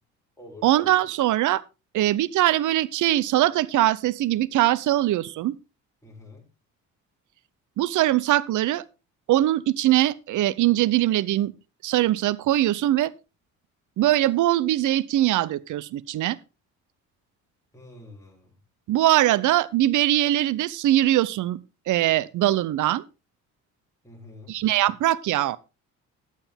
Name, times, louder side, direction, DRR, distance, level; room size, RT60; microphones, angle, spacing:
voice 1, 0.6-1.6 1.9-5.6 7.8-8.8 9.3-11.5 11.8-13.1 14.0-16.4 18.9-21.6 21.9-23.0 24.5-25.6, right 14 dB, 60° right, 0.7 m, -22 dB
voice 2, 6.0-6.5 17.7-18.5 24.0-24.5, left 2 dB, 10° left, 6.3 m, -46 dB
11.5 x 8.9 x 3.5 m
supercardioid pair, 70°, 34 cm